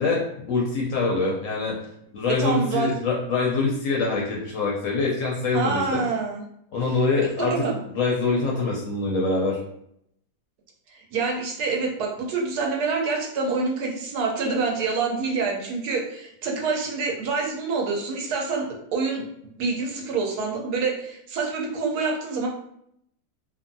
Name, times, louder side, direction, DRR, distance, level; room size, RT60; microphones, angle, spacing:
voice 1, 0.0-1.8 2.1-6.0 6.7-7.6 7.9-9.6, left 3 dB, 65° left, -3 dB, 0.8 m, -24 dB
voice 2, 2.3-2.9 5.5-6.4 7.6-7.8 11.1-18.7 18.9-19.2 19.6-22.5, right 4 dB, 80° right, 0 dB, 1.1 m, -26 dB
2.7 x 2.4 x 2.5 m, 0.73 s
omnidirectional pair, 1.7 m